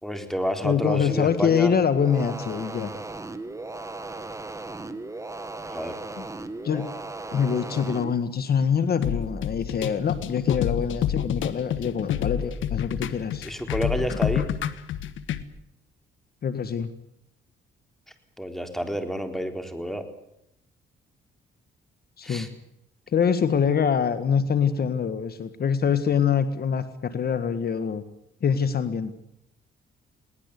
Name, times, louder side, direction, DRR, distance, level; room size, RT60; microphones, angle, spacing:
voice 1, 0.0-1.7 5.7-6.0 13.4-14.5 18.4-20.0 22.2-22.5, equal, ahead, 6 dB, 3.9 m, -29 dB
voice 2, 0.6-2.9 4.9-5.0 6.6-6.9 7.3-13.5 16.4-16.9 22.2-22.5 23.1-28.0 28.4-29.1, left 7 dB, 50° left, 11 dB, 1.6 m, -24 dB
sound 1, 2.0-8.1, right 2 dB, 15° right, 1.8 m, -36 dB
sound 2, 9.0-15.4, left 9 dB, 75° left, 1.5 m, -28 dB
21.5 x 19.0 x 8.3 m, 0.79 s
cardioid pair, 90°, 20 cm